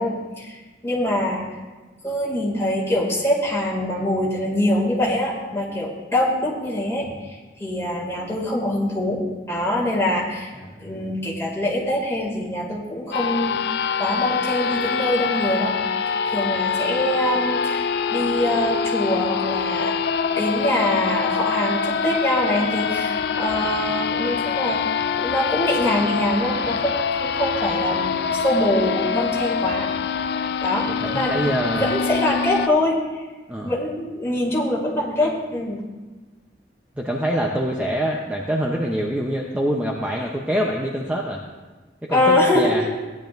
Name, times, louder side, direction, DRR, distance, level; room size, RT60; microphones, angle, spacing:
voice 1, 0.0-1.4 2.0-9.2 9.5-10.5 10.8-13.6 14.0-15.7 16.3-20.1 20.4-24.8 25.1-29.9 30.6-33.2 33.6-35.8 42.1-42.8, left 1 dB, 15° left, -4 dB, 2.3 m, -24 dB
voice 2, 10.6-11.0 31.0-31.9 33.5-33.7 37.0-41.4 42.1-42.8, equal, 5° right, -2 dB, 0.7 m, -25 dB
sound 1, 13.1-32.7, left 6 dB, 60° left, 0.3 m, -25 dB
16.5 x 10.5 x 2.6 m, 1.2 s
head